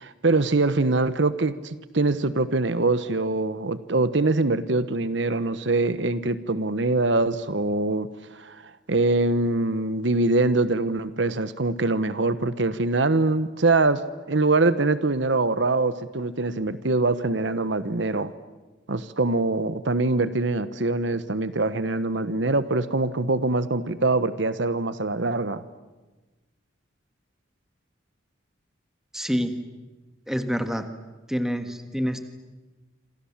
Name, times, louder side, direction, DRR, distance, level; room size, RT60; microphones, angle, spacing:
voice 1, 0.0-18.3 18.9-25.6, right 2 dB, 70° right, 13 dB, 1.1 m, -24 dB
voice 2, 29.1-29.6 30.3-30.9 31.3-32.2, equal, ahead, 7 dB, 1.7 m, -27 dB
27.5 x 27.0 x 7.4 m, 1.2 s
head